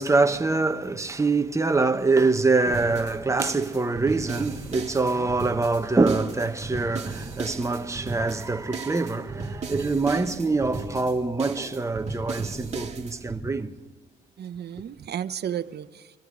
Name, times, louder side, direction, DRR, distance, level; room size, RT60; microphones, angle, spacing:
voice 1, 0.0-13.7, right 3 dB, 15° right, 1.0 m, -24 dB
sound 1, 2.7-13.4, right 4 dB, 35° right, 2.5 m, -36 dB
voice 2, 5.0-5.3 14.4-16.2, right 9 dB, 55° right, 0.9 m, -34 dB
25.5 x 14.5 x 3.8 m
cardioid pair, 90°, 20 cm